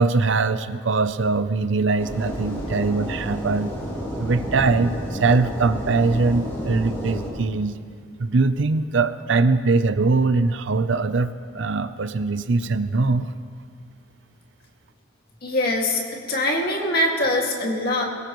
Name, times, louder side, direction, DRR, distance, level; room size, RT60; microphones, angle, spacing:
voice 1, 0.0-3.7 4.2-7.8 8.2-13.3, right 3 dB, 65° right, 12 dB, 0.6 m, -22 dB
sound 1, 2.0-7.3, equal, 15° left, 4.5 m, -31 dB
voice 2, 15.4-18.0, left 1 dB, 50° left, 0 dB, 2.2 m, -23 dB
22.0 x 18.0 x 3.1 m, 2.1 s
head